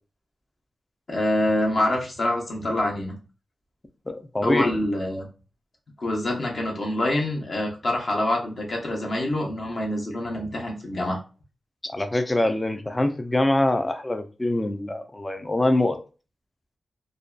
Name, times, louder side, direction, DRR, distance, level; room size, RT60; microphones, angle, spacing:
voice 1, 1.1-3.2 4.4-5.3 6.0-11.2, left 1 dB, 45° left, -1 dB, 0.8 m, -26 dB
voice 2, 4.1-4.7 11.9-16.0, left 1 dB, 15° left, 8 dB, 0.3 m, -24 dB
2.5 x 2.2 x 2.3 m, 0.33 s
wide cardioid pair, 125°, 0 cm